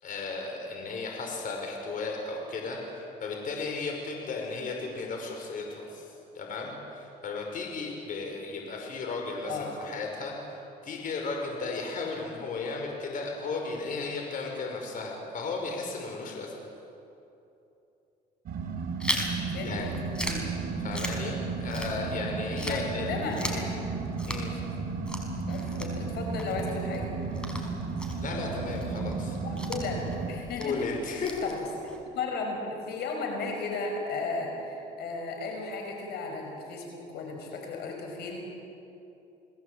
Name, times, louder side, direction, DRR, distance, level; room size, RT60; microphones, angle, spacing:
voice 1, 0.0-16.5 19.6-19.9 20.8-23.2 24.2-24.7 28.2-29.4 30.6-31.5, left 3 dB, 55° left, 1 dB, 5.6 m, -35 dB
sound 1, 18.5-30.3, right 4 dB, 60° right, 4.3 m, -34 dB
Chewing mastication, 19.0-22.3 22.6-32.0, equal, 5° left, 4.8 m, -38 dB
voice 2, 19.5-19.9 20.2-20.5 22.7-23.7 25.5-27.1 29.4-30.8 31.1-31.7 32.1-38.5, left 4 dB, 70° left, 2 dB, 5.6 m, -35 dB
29.5 x 20.0 x 8.3 m, 2.8 s
cardioid pair, 110°, 17 cm